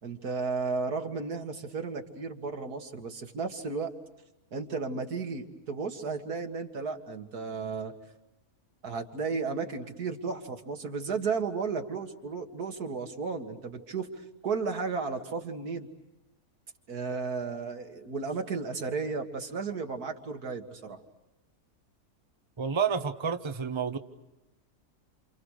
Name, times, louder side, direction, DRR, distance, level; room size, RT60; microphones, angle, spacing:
voice 1, 0.0-3.9 4.5-7.9 8.8-14.1 14.4-15.9 16.9-21.0, right 4 dB, 90° right, 4 dB, 2.4 m, -34 dB
voice 2, 22.6-24.0, right 6 dB, 20° right, 7 dB, 1.0 m, -29 dB
28.5 x 28.5 x 6.5 m, 0.97 s
omnidirectional pair, 1.6 m